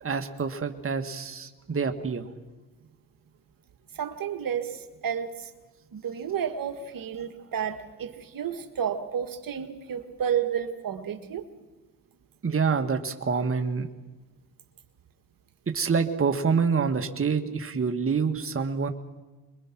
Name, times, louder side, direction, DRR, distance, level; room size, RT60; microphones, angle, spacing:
voice 1, 0.0-2.3 12.4-13.9 15.7-18.9, right 5 dB, 35° right, 6 dB, 1.8 m, -27 dB
voice 2, 3.9-5.5 5.9-11.5, right 8 dB, 60° right, 7 dB, 1.8 m, -31 dB
25.5 x 22.0 x 6.1 m, 1.2 s
supercardioid pair, 65°, 38 cm